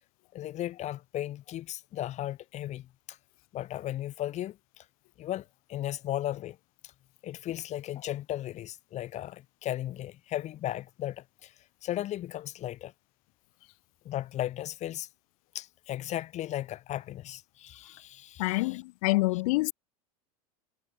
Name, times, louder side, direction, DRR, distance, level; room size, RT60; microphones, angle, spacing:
voice 1, 0.3-3.2 3.5-4.8 5.2-6.6 7.2-11.5 11.8-12.9 14.0-15.1 15.5-18.8, left 13 dB, 35° left, 0.9 m, -36 dB
voice 2, 18.4-19.7, left 23 dB, 65° left, 0.5 m, -26 dB
hypercardioid pair, 100°, 19 cm